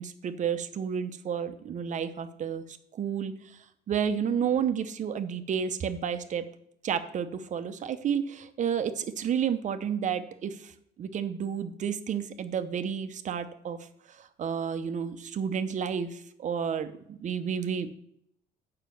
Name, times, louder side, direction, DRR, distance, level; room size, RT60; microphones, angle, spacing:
voice 1, 0.0-3.6 3.9-6.4 6.8-10.7 11.0-13.8 14.2-17.9, right 7 dB, 45° right, 10 dB, 0.9 m, -31 dB
7.4 x 5.8 x 6.9 m, 0.73 s
cardioid pair, 110°, 17 cm